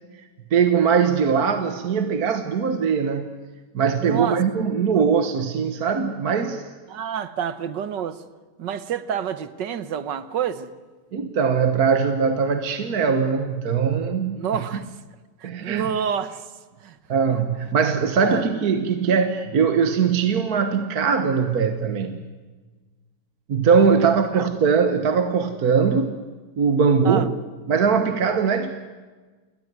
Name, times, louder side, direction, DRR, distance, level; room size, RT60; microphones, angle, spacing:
voice 1, 0.5-3.3 3.7-6.6 11.1-14.4 15.4-15.9 17.1-22.2 23.5-26.2 26.6-27.3 27.7-28.7, right 6 dB, 60° right, 8 dB, 1.7 m, -21 dB
voice 2, 4.0-4.4 6.9-8.2 8.6-10.7 14.4-14.9 15.4-16.5 16.8-17.0 17.3-17.4 18.3-18.8 24.0-24.5 27.1-27.3, right 8 dB, 85° right, 14 dB, 1.8 m, -28 dB
28.5 x 22.0 x 9.5 m, 1.3 s
omnidirectional pair, 1.9 m